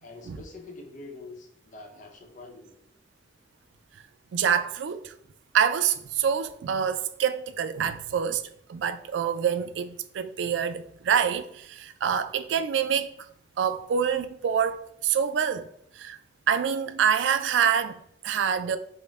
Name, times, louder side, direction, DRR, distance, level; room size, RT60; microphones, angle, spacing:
voice 1, 0.0-2.8, left 2 dB, 45° left, 0.7 m, -45 dB
voice 2, 4.3-5.1 5.5-13.3 13.6-15.7 16.0-16.2 16.5-18.8, right 8 dB, 90° right, 0.3 m, -26 dB
5.3 x 2.1 x 3.4 m
head